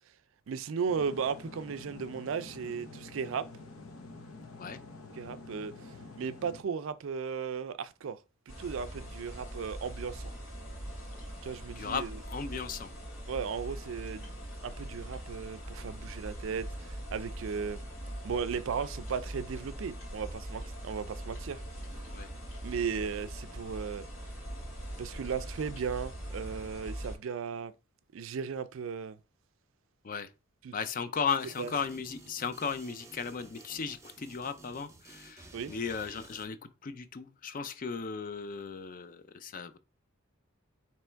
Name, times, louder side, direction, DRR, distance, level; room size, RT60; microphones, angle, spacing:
voice 1, 0.5-3.5 5.1-5.7 6.2-8.2 8.6-10.3 11.4-12.2 13.3-14.3 14.6-17.8 18.2-21.6 22.6-24.1 25.0-27.7 28.1-29.2 30.6-30.7 31.6-31.7 35.5-35.7, right 6 dB, 65° right, 0.4 m, -36 dB
sound 1, 0.9-6.6, left 3 dB, 80° left, 0.8 m, -48 dB
sound 2, 8.5-27.2, right 1 dB, 60° left, 2.1 m, -42 dB
voice 2, 11.8-12.9 22.1-22.3 30.0-30.3 30.7-39.8, left 6 dB, 40° left, 0.4 m, -36 dB
sound 3, 31.4-36.4, right 2 dB, 15° right, 0.7 m, -53 dB
3.4 x 3.0 x 4.4 m
head